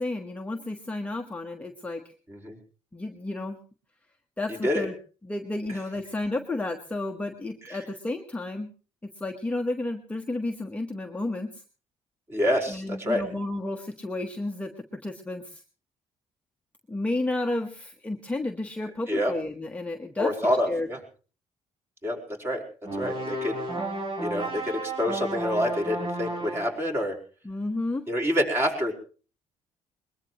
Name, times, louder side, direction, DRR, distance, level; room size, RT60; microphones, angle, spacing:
voice 1, 0.0-2.1 2.9-3.6 4.4-4.9 5.2-8.7 9.2-11.6 12.7-15.6 16.9-20.3 20.7-20.9 27.4-28.0, left 2 dB, 10° left, 3 dB, 1.2 m, -32 dB
voice 2, 12.3-13.2 19.1-19.3 20.2-21.0 22.0-22.6 23.0-23.6 24.2-27.2 28.1-28.9, equal, 20° right, 1 dB, 4.8 m, -27 dB
sound 1, 22.8-26.8, right 2 dB, 55° right, 7.4 m, -33 dB
22.0 x 21.5 x 3.1 m, 0.39 s
cardioid pair, 130°, 12 cm